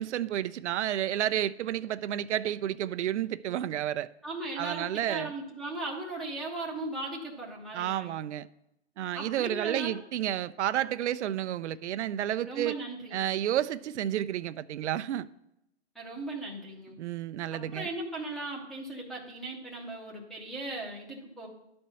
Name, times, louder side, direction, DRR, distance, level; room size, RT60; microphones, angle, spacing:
voice 1, 0.0-4.1 4.6-5.3 7.7-8.5 9.0-12.8 13.1-15.3 17.0-17.9, right 11 dB, 85° right, 0.5 m, -31 dB
voice 2, 4.2-8.1 9.1-10.0 12.4-13.2 15.9-17.0 17.5-21.5, right 2 dB, ahead, 0.7 m, -38 dB
11.5 x 4.3 x 6.8 m
hypercardioid pair, 160°, 34 cm